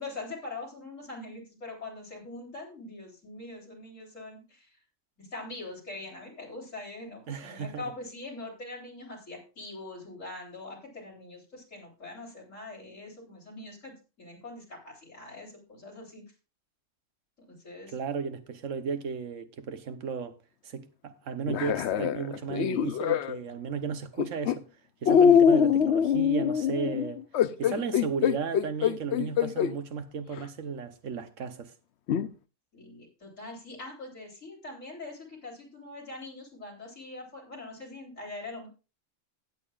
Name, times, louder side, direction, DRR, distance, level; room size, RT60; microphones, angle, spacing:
voice 1, 0.0-4.7 5.2-16.2 17.4-17.9 26.8-26.9 32.7-38.7, left 2 dB, 85° left, 4.1 m, -43 dB
voice 2, 7.3-7.8 17.9-20.3 20.6-24.6 25.0-27.2 27.6-31.7, right 6 dB, 85° right, 1.3 m, -34 dB
sound 1, 21.5-23.4 24.2-24.5 25.1-29.7 30.4-30.5 32.1-32.3, left 8 dB, 65° left, 0.9 m, -23 dB
16.5 x 8.7 x 2.4 m
omnidirectional pair, 1.3 m